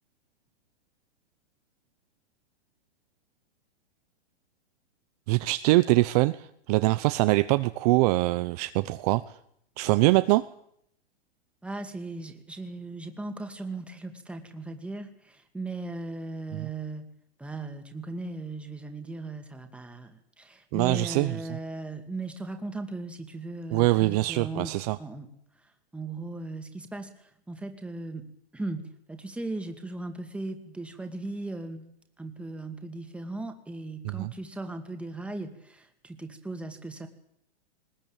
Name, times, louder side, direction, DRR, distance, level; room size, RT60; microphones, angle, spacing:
voice 1, 5.3-9.2 9.8-10.5 16.5-16.7 20.7-21.6 23.7-25.0 34.0-34.3, right 20 dB, 35° right, 13 dB, 0.8 m, -23 dB
voice 2, 11.6-17.1 17.4-24.7 25.0-25.3 25.6-28.3 28.5-31.8 32.2-37.1, right 2 dB, 5° right, 6 dB, 2.3 m, -37 dB
20.0 x 20.0 x 8.9 m, 0.71 s
hypercardioid pair, 140°, 32 cm